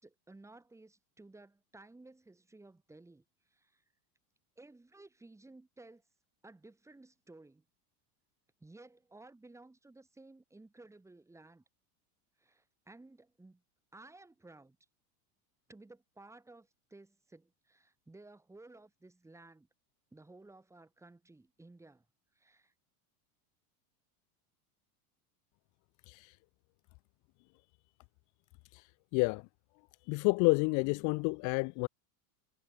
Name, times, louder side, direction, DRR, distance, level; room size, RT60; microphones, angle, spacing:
voice 1, 0.0-3.2 3.5-3.8 4.6-6.0 6.4-7.6 8.6-11.6 12.4-13.6 13.9-14.8 15.7-19.7 20.1-22.0 22.3-22.7, right 2 dB, 5° right, 5.0 m, -56 dB
voice 2, 29.1-29.5 30.1-31.9, left 31 dB, 40° left, 0.7 m, -29 dB
supercardioid pair, 160°, 46 cm